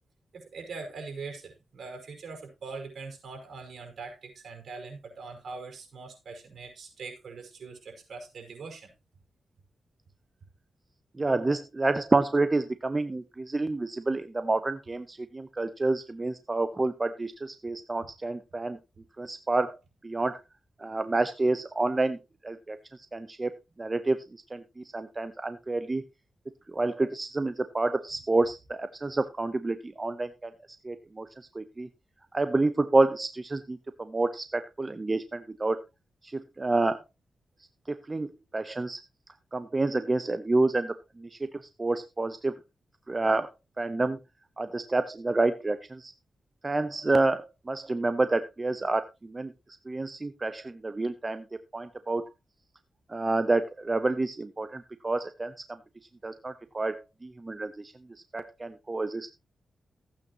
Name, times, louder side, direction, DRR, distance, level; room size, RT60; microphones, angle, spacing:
voice 1, 0.3-8.9, right 4 dB, 70° right, 4 dB, 5.5 m, -42 dB
voice 2, 11.2-18.8 19.2-19.7 20.0-20.4 20.8-22.2 22.4-22.8 23.1-26.0 26.7-30.5 30.8-31.3 31.5-31.9 32.3-35.8 36.2-37.0 37.9-39.0 39.5-41.5 41.8-42.5 43.1-43.5 43.8-44.2 44.6-46.1 46.6-49.5 49.9-51.5 51.7-52.3 53.1-55.5 56.2-57.9 58.3-59.3, right 2 dB, 30° right, 11 dB, 0.8 m, -28 dB
15.0 x 8.9 x 3.0 m, 0.24 s
cardioid pair, 70°, 0 cm